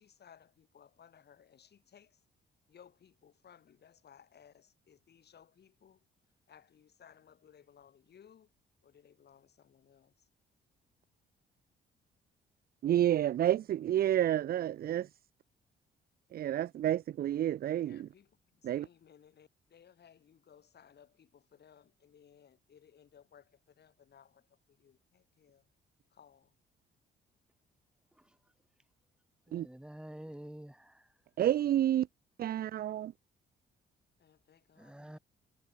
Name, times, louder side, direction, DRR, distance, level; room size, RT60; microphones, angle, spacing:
voice 1, 0.0-2.2 2.7-6.1 6.5-8.5 8.8-10.3 17.8-25.7 26.1-26.5 34.2-35.2, left 8 dB, 55° left, 7.0 m, -61 dB
voice 2, 12.8-15.1 16.3-18.1 18.6-18.9 29.5-29.7 31.4-32.1 32.4-33.1, right 12 dB, 50° right, 0.4 m, -29 dB
voice 3, 29.5-31.1 34.8-35.2, right 1 dB, 5° right, 4.5 m, -49 dB
cardioid pair, 90°, 20 cm